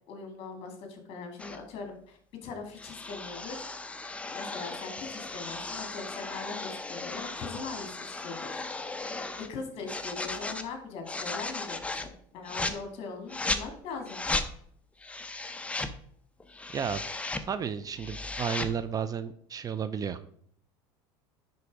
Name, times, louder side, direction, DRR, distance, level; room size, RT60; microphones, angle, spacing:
voice 1, 0.1-3.7 4.2-8.6 9.4-14.2, left 4 dB, 50° left, 4 dB, 2.3 m, -41 dB
sound 1, 1.4-1.6 2.8-9.5 9.9-10.7 11.1-12.1 12.4-12.8 13.3-13.6 14.0-14.5 15.0-15.9 16.4-17.5 17.8-18.7, left 3 dB, 10° left, 0.7 m, -36 dB
voice 2, 17.4-20.2, right 7 dB, 30° right, 13 dB, 0.5 m, -32 dB
10.0 x 4.0 x 4.8 m, 0.64 s
supercardioid pair, 110°, 12 cm